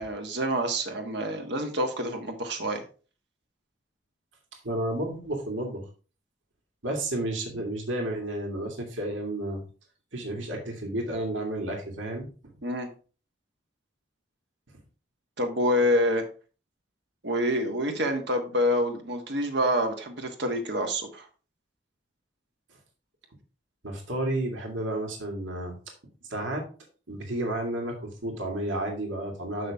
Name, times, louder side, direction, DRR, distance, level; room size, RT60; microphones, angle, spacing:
voice 1, 0.0-2.8 12.6-12.9 15.4-16.2 17.2-21.3, equal, 60° right, 4 dB, 1.4 m, -27 dB
voice 2, 4.6-5.8 6.8-9.6 10.1-12.3 23.8-25.8 26.3-26.6 27.1-29.7, right 1 dB, 85° right, 1 dB, 2.2 m, -31 dB
7.0 x 6.1 x 3.5 m, 0.37 s
head